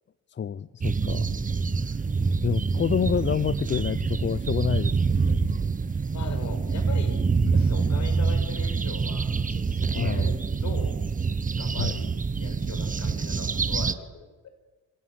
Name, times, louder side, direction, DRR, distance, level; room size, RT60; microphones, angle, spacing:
voice 1, 0.3-1.4 1.9-2.0 2.4-5.6 7.4-7.5 9.9-10.4 11.8-12.0, left 8 dB, 40° left, 16 dB, 0.7 m, -29 dB
sound 1, 0.8-13.9, right 5 dB, 25° right, 1.3 m, -26 dB
voice 2, 6.1-7.2 7.5-10.4 10.6-10.9 11.6-12.1 12.4-14.5, left 6 dB, 65° left, 7 dB, 5.5 m, -40 dB
26.0 x 17.0 x 9.7 m, 1.2 s
cardioid pair, 90°, 30 cm